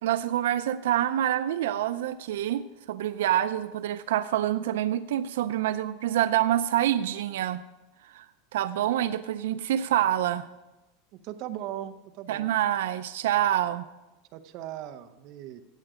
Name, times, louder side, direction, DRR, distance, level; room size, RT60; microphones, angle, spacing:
voice 1, 0.0-7.6 8.0-8.3 8.5-10.5 12.3-13.9, right 12 dB, 80° right, 12 dB, 0.5 m, -26 dB
voice 2, 11.2-12.5 14.3-15.6, right 12 dB, 35° right, 8 dB, 0.8 m, -38 dB
15.5 x 9.1 x 5.0 m, 1.1 s
supercardioid pair, 180°, 0 cm